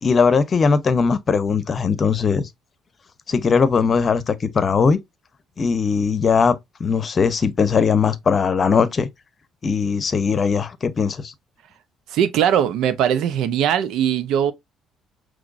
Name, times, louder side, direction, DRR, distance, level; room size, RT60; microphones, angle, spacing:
voice 1, 0.0-2.5 3.3-5.0 5.6-9.1 9.6-11.3, left 5 dB, 40° left, 0.8 m, -19 dB
voice 2, 12.1-14.5, right 9 dB, 65° right, 0.6 m, -20 dB
5.8 x 3.1 x 2.5 m
hypercardioid pair, 50°, 0 cm